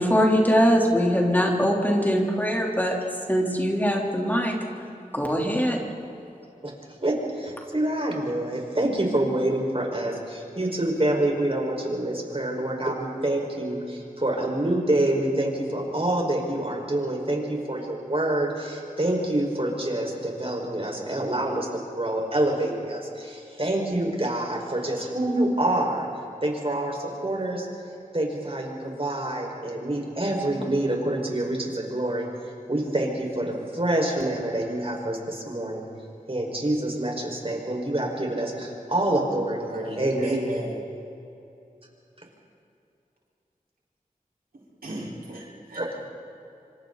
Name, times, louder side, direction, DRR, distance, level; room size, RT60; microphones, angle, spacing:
voice 1, 0.0-3.0 3.3-4.6 5.1-5.8, equal, 10° left, -1 dB, 3.5 m, -22 dB
voice 2, 7.0-26.1 26.4-27.7 28.1-32.3 32.7-35.9 36.3-40.4 45.8-46.0, right 1 dB, 40° right, 0 dB, 5.2 m, -27 dB
voice 3, 39.7-40.8 44.8-45.8, right 1 dB, 85° right, -4 dB, 4.7 m, -33 dB
26.5 x 26.0 x 4.1 m, 2.7 s
wide cardioid pair, 40°, 15 cm